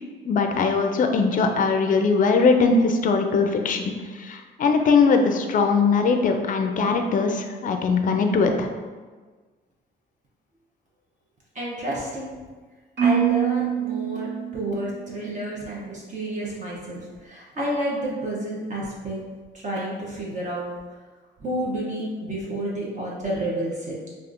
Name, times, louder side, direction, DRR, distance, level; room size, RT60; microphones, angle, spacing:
voice 1, 0.2-8.7, left 4 dB, 45° left, 5 dB, 0.4 m, -21 dB
voice 2, 11.5-12.3 13.0-19.2 19.5-20.7 21.4-24.0, right 1 dB, 40° right, -5 dB, 0.7 m, -30 dB
Marimba xylophone, 13.0-15.2, right 9 dB, 60° right, 1.1 m, -25 dB
3.4 x 2.4 x 2.5 m, 1.4 s
cardioid pair, 90°, 20 cm